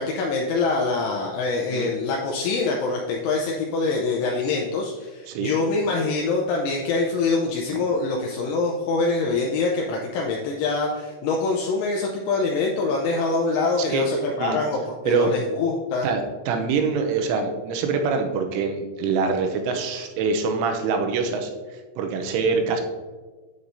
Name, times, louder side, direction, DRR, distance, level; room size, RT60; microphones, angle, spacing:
voice 1, 0.0-16.1, left 3 dB, 80° left, -1 dB, 2.9 m, -24 dB
voice 2, 16.0-21.5 22.0-22.8, right 5 dB, 80° right, 4 dB, 3.0 m, -24 dB
8.6 x 7.8 x 2.7 m, 1.3 s
omnidirectional pair, 5.9 m